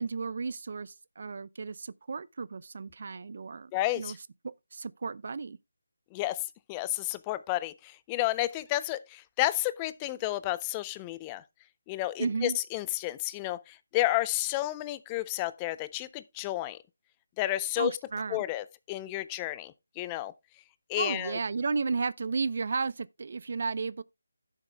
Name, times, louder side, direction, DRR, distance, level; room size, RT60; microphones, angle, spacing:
voice 1, 0.0-4.2 4.7-5.6 12.2-12.6 17.8-18.4 21.0-24.0, right 4 dB, 50° right, 0.5 m, -33 dB
voice 2, 3.7-4.2 6.1-11.4 11.9-16.8 17.4-17.9 18.3-20.3 20.9-21.4, left 16 dB, 15° left, 0.4 m, -31 dB
10.5 x 7.3 x 3.4 m
figure-of-eight pair, 160°, 0 cm